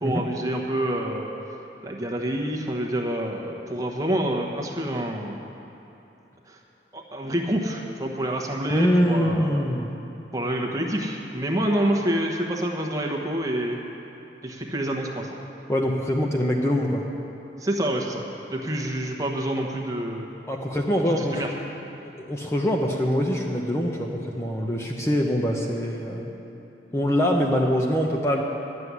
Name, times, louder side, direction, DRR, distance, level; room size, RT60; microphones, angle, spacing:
voice 1, 0.0-1.3 1.8-5.4 6.5-6.6 6.9-9.6 10.3-13.8 14.4-15.3 17.6-18.2 18.5-20.3 21.1-21.5, right 1 dB, 20° right, 0 dB, 1.1 m, -27 dB
voice 2, 8.7-9.9 15.7-17.0 20.5-21.4 22.3-26.3 26.9-28.4, equal, 15° left, 0 dB, 0.8 m, -24 dB
11.5 x 7.7 x 9.5 m, 3.0 s
head